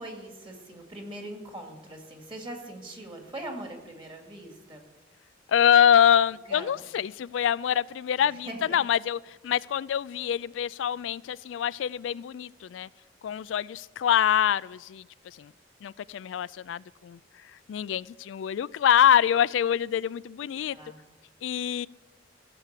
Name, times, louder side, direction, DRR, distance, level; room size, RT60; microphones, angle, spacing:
voice 1, 0.0-4.8 6.5-6.8 8.2-8.8 20.7-21.0, right 1 dB, 25° right, 2 dB, 2.3 m, -41 dB
voice 2, 5.5-12.9 13.2-15.5 15.8-20.8 21.4-21.9, left 9 dB, 85° left, 19 dB, 0.3 m, -25 dB
15.5 x 7.0 x 8.2 m, 1.2 s
head